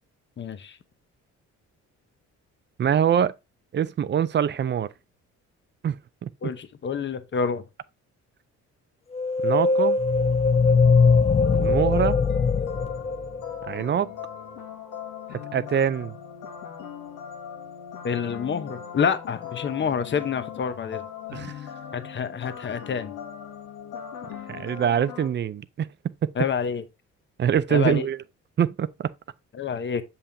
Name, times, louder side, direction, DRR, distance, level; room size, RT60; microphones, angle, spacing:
voice 1, 0.4-0.8 6.4-7.6 18.0-21.0 21.9-23.1 26.4-26.8 27.7-28.0 29.6-30.0, left 6 dB, 40° left, 0.9 m, -28 dB
voice 2, 2.8-3.3 3.7-4.9 5.8-6.0 6.2-6.5 9.4-10.0 11.6-12.2 13.6-14.1 15.3-16.1 21.3-21.6 24.5-25.9 26.2-26.3 27.4-28.2 28.6-29.1, right 8 dB, 35° right, 0.5 m, -24 dB
sound 1, 9.1-13.7, left 4 dB, 20° left, 0.3 m, -21 dB
sound 2, 11.4-25.3, left 8 dB, 85° left, 1.4 m, -39 dB
6.9 x 5.6 x 2.7 m
cardioid pair, 90°, 30 cm